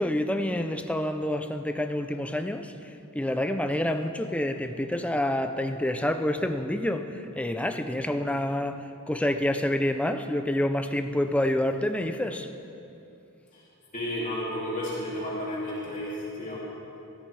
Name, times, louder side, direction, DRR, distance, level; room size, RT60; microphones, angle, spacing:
voice 1, 0.0-2.7 3.1-12.5, left 1 dB, 5° left, 7 dB, 0.5 m, -28 dB
voice 2, 13.9-16.6, left 1 dB, 40° left, -7 dB, 2.6 m, -32 dB
16.5 x 13.0 x 3.4 m, 2.8 s
head